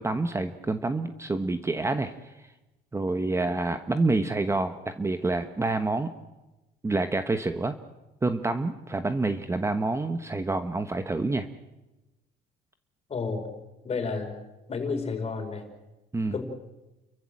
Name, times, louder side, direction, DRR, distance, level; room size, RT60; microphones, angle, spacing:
voice 1, 0.0-2.1 2.9-6.1 6.8-7.7 8.2-11.5 16.1-16.4, right 2 dB, 15° right, 9 dB, 1.1 m, -27 dB
voice 2, 13.1-13.5 13.8-14.3 14.7-15.6 16.3-16.4, left 4 dB, 35° left, 4 dB, 5.1 m, -31 dB
30.0 x 14.5 x 7.8 m, 1.0 s
cardioid pair, 110°, 17 cm